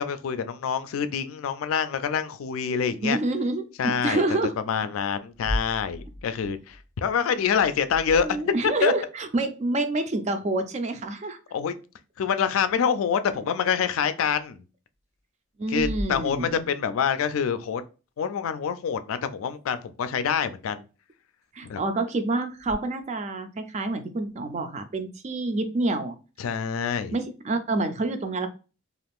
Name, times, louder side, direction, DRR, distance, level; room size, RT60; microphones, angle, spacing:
voice 1, 0.0-3.2 3.8-4.2 4.7-8.9 11.5-11.7 12.2-14.6 15.7-17.8 18.2-20.8 21.6-21.8 26.4-27.2, left 7 dB, 80° left, 0.3 m, -26 dB
voice 2, 3.0-4.5 8.2-11.4 15.6-16.6 21.5-26.2 27.1-28.5, right 2 dB, 35° right, 0.4 m, -27 dB
sound 1, 5.3-8.8 13.3-13.4 14.3-14.4 15.7-17.0 22.6-22.7, left 1 dB, 90° right, 0.8 m, -37 dB
2.4 x 2.4 x 3.4 m
head